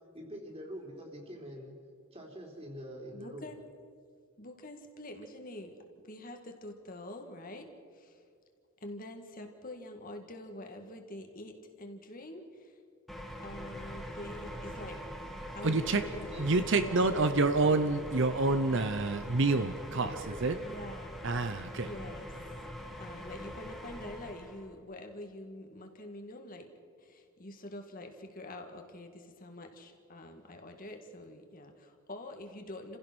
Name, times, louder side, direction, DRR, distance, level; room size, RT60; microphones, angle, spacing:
voice 1, 0.1-1.7 2.1-3.5 15.7-16.6 20.0-20.7, equal, 30° right, 0 dB, 3.8 m, -45 dB
voice 2, 3.1-3.6 4.4-5.8 6.0-8.2 8.8-12.8 13.4-15.1 15.6-17.4 20.6-21.2 21.8-22.3 23.0-26.7 27.0-33.0, left 1 dB, 40° left, 4 dB, 2.0 m, -46 dB
sound 1, 13.1-24.7, equal, ahead, 2.0 m, -43 dB
voice 3, 15.6-16.0 16.4-20.1 20.4-20.6 21.2-21.9, right 3 dB, 60° right, 10 dB, 0.8 m, -27 dB
29.0 x 16.0 x 6.2 m, 2.2 s
head